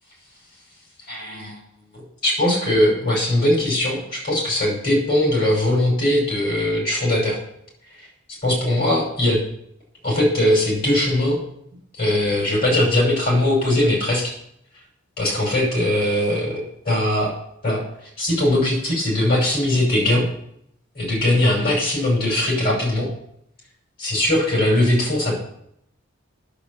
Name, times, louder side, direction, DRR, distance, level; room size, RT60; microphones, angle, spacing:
voice 1, 1.1-1.6 1.9-7.4 8.4-9.4 10.0-11.4 12.0-14.3 15.2-17.3 17.6-17.8 18.2-20.3 20.9-23.1 24.0-25.4, left 1 dB, 50° left, -1 dB, 5.7 m, -20 dB
9.9 x 7.0 x 8.1 m, 0.72 s
head